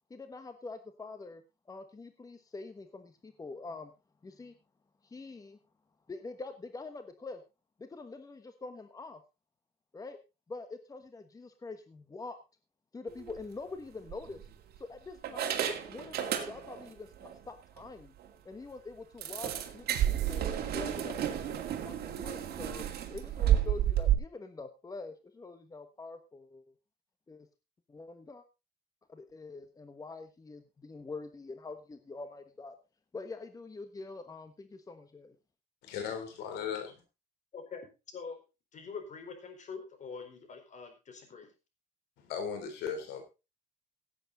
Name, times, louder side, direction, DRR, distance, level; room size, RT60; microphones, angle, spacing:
voice 1, 0.1-1.4 1.7-3.9 4.2-4.6 5.0-5.6 6.1-7.4 7.8-9.2 9.9-10.2 10.5-12.4 12.9-14.4 14.8-15.6 15.9-18.1 18.4-20.5 20.7-22.8 23.1-26.7 27.3-27.5 27.9-28.4 29.1-32.7 33.1-35.3, left 3 dB, 20° left, 8 dB, 1.3 m, -45 dB
sound 1, 13.2-13.4 14.1-14.8 15.2-16.9 17.2-17.4 17.8-17.9 18.2-18.3 19.2-24.1, right 11 dB, 65° right, 2.3 m, -31 dB
sound 2, 19.9-21.2, right 14 dB, 85° right, 1.3 m, -44 dB
voice 2, 35.8-37.0 42.2-43.2, left 7 dB, 90° left, 7 dB, 3.6 m, -37 dB
voice 3, 37.5-37.9 38.1-38.4 38.7-41.5, left 5 dB, 45° left, 6 dB, 4.4 m, -44 dB
16.5 x 8.3 x 4.0 m, 0.29 s
cardioid pair, 110°, 17 cm